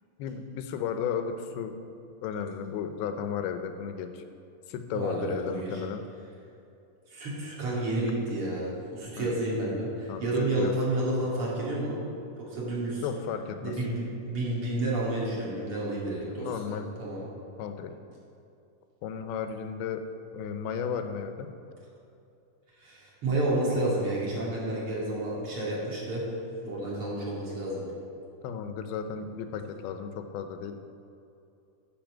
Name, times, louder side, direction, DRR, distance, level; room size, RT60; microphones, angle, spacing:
voice 1, 0.2-1.8 2.2-4.2 4.7-6.1 9.2-9.4 10.1-10.7 13.0-13.9 16.4-16.9 17.6-17.9 19.0-20.0 20.3-21.5 28.4-30.8, left 7 dB, 85° left, 8 dB, 2.6 m, -34 dB
voice 2, 4.9-5.7 7.1-12.0 12.5-13.0 13.6-17.2 22.8-26.2 26.6-27.8, right 1 dB, 40° right, -5 dB, 2.8 m, -30 dB
10.5 x 5.8 x 7.3 m, 2.7 s
omnidirectional pair, 4.4 m